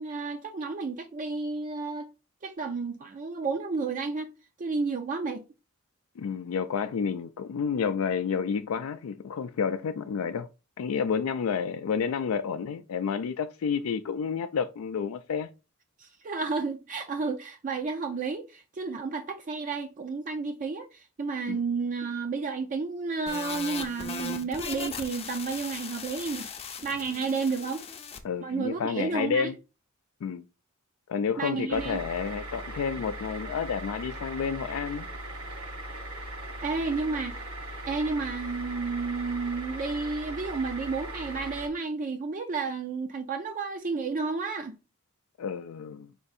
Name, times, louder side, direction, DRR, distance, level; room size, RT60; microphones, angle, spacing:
voice 1, 0.0-2.1 2.4-4.3 4.6-5.4 16.0-26.5 26.8-27.8 28.4-29.5 31.4-32.0 36.6-37.5 37.9-44.8, right 4 dB, 40° right, 0.4 m, -31 dB
voice 2, 6.2-10.5 10.8-15.5 21.5-21.6 28.2-29.5 30.2-30.4 31.1-35.1 45.4-46.1, left 6 dB, 80° left, 0.3 m, -30 dB
sound 1, 23.3-28.2, left 5 dB, 30° left, 0.5 m, -38 dB
sound 2, 31.7-41.7, right 1 dB, 90° right, 1.2 m, -39 dB
4.4 x 2.6 x 4.0 m
head